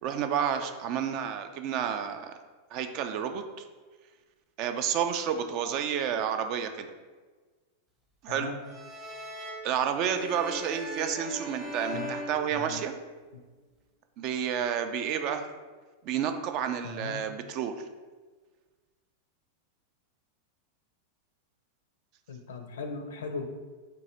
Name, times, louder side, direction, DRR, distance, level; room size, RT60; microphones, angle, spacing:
voice 1, 0.0-2.3 2.7-3.6 4.6-6.9 8.2-8.5 9.6-12.9 14.2-15.4 16.0-17.7, right 8 dB, 40° right, 7 dB, 0.3 m, -30 dB
voice 2, 8.3-8.6 11.9-12.1 12.5-12.8 16.8-17.2 22.3-23.5, left 4 dB, 60° left, 5 dB, 0.4 m, -38 dB
sound 1, 8.6-13.2, equal, 15° right, 0.7 m, -40 dB
3.8 x 2.6 x 4.2 m, 1.4 s
figure-of-eight pair, 90°, 0 cm